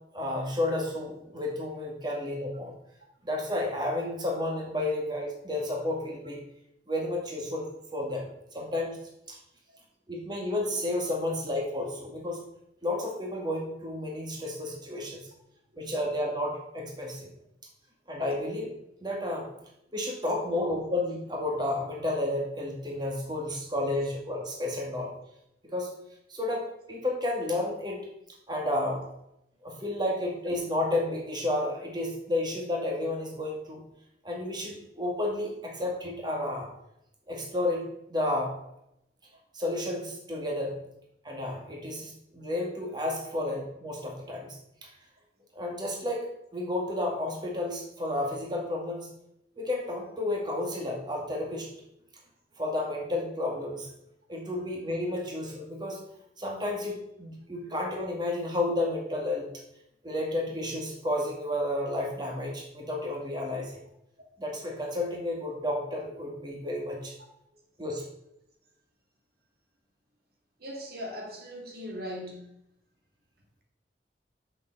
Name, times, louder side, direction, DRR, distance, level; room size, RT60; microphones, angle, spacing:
voice 1, 0.1-2.7 3.2-6.4 6.9-7.6 7.9-9.0 9.3-9.4 10.1-12.4 12.8-15.3 15.8-17.3 18.1-18.7 19.0-19.5 19.9-25.1 25.7-25.9 26.3-28.0 28.5-29.0 29.6-33.8 34.2-36.7 37.3-38.6 39.5-40.7 41.2-44.6 45.5-46.3 46.5-49.1 49.6-51.7 52.6-53.9 54.3-56.0 56.4-59.5 60.0-63.8 64.4-67.1 67.8-68.0, left 1 dB, 25° right, -1 dB, 2.2 m, -31 dB
voice 2, 70.6-72.5, equal, 60° right, 0 dB, 1.9 m, -39 dB
7.0 x 7.0 x 6.6 m, 0.80 s
head